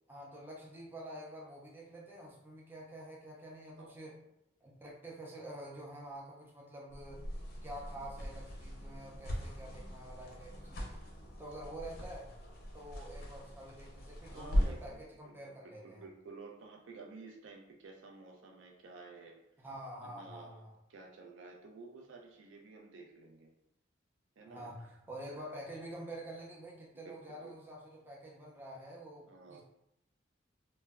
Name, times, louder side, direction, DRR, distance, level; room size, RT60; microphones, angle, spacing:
voice 1, 0.1-4.2 4.6-7.3 7.6-11.0 11.4-12.4 12.7-16.0 19.6-20.7 24.5-29.6, right 1 dB, 10° right, -3 dB, 0.4 m, -48 dB
voice 2, 3.7-4.2 14.3-19.4 20.0-20.6 20.9-23.5 24.4-24.9 25.3-25.5 26.9-27.6 29.3-29.6, right 3 dB, 80° right, 2 dB, 0.4 m, -53 dB
sound 1, 6.9-15.0, equal, 50° left, 0.5 m, -39 dB
2.2 x 2.0 x 3.4 m, 0.82 s
head